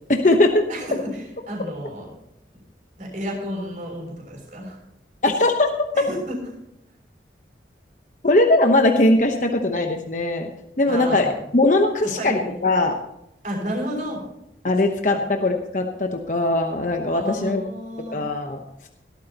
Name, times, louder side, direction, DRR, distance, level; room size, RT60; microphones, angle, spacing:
voice 1, 0.1-0.6 5.2-5.7 8.2-10.5 10.8-11.3 11.5-13.0 14.6-17.6 18.1-18.9, left 2 dB, 45° left, 4 dB, 1.0 m, -20 dB
voice 2, 0.7-2.1 3.0-4.8 5.9-6.4 10.9-11.3 12.0-12.5 13.4-14.2 15.1-15.2 17.1-18.2, equal, 45° right, 0 dB, 6.4 m, -31 dB
19.0 x 13.0 x 3.0 m, 0.80 s
head